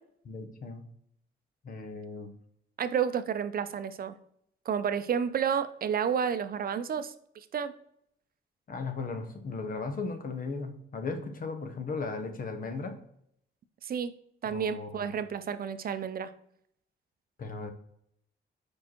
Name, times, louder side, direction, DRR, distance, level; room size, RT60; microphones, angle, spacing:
voice 1, 0.2-0.9 1.6-2.3 8.7-13.0 14.5-15.1 17.4-17.7, left 4 dB, 50° left, 7 dB, 1.0 m, -36 dB
voice 2, 2.8-4.1 4.7-7.1 7.5-7.7 13.8-14.1 14.4-16.3, right 7 dB, 55° right, 11 dB, 0.6 m, -30 dB
4.9 x 4.7 x 4.4 m, 0.71 s
cardioid pair, 115°, 19 cm